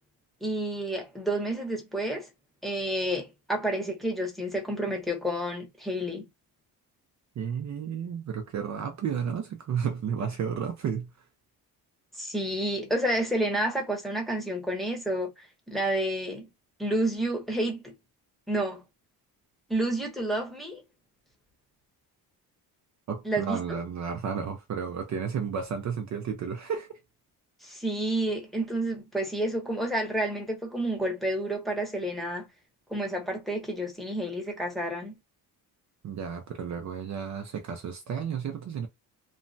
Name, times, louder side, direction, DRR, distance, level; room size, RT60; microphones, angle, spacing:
voice 1, 0.4-2.3 2.6-6.3 12.2-16.5 16.8-17.9 18.5-18.8 19.7-20.8 23.2-23.8 27.6-32.5 32.9-35.2, right 1 dB, ahead, 0.9 m, -30 dB
voice 2, 7.4-11.1 23.1-27.0 36.0-38.9, right 7 dB, 45° right, 0.6 m, -32 dB
3.1 x 2.1 x 2.6 m
cardioid pair, 140°, 39 cm